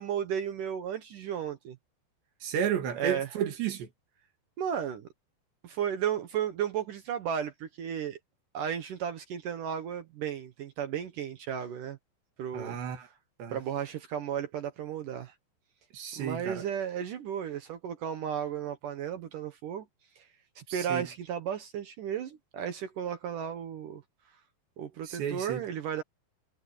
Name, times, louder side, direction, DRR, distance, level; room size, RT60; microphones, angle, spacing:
voice 1, 0.0-1.8 3.0-3.3 4.6-5.1 5.6-8.2 8.5-12.0 12.4-12.8 13.5-15.3 16.2-19.9 20.2-20.3 20.7-24.0 24.8-26.0, right 8 dB, 65° right, 2.4 m, -34 dB
voice 2, 2.4-3.9 12.5-13.1 13.4-13.6 15.9-16.6 20.7-21.1 25.0-25.6, right 9 dB, 80° right, 4.6 m, -32 dB
omnidirectional pair, 4.9 m